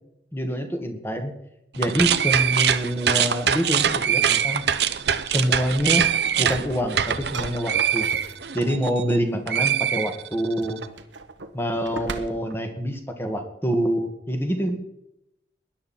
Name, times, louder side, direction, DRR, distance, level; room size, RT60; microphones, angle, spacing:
voice 1, 0.3-1.3 1.8-4.6 5.3-6.1 6.4-8.1 8.5-10.8 11.5-14.8, equal, 15° left, 5 dB, 1.9 m, -26 dB
sound 1, 1.7-9.2 9.5-10.6, right 8 dB, 65° right, 0.8 m, -23 dB
sound 2, 6.0-8.8 10.4-12.6, right 3 dB, 85° right, 1.3 m, -37 dB
19.5 x 11.5 x 4.4 m, 0.82 s
head